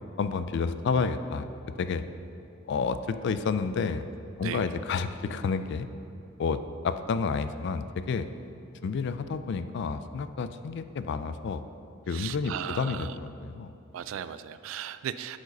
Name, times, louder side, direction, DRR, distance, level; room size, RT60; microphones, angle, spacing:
voice 1, 0.2-1.5 1.8-2.0 2.7-4.1 4.4-5.9 6.4-8.3 8.8-11.6 12.1-13.7, left 5 dB, 60° left, 12 dB, 0.3 m, -30 dB
voice 2, 12.1-13.1 13.9-15.4, right 9 dB, 75° right, 13 dB, 0.3 m, -36 dB
7.9 x 5.0 x 5.2 m, 2.7 s
head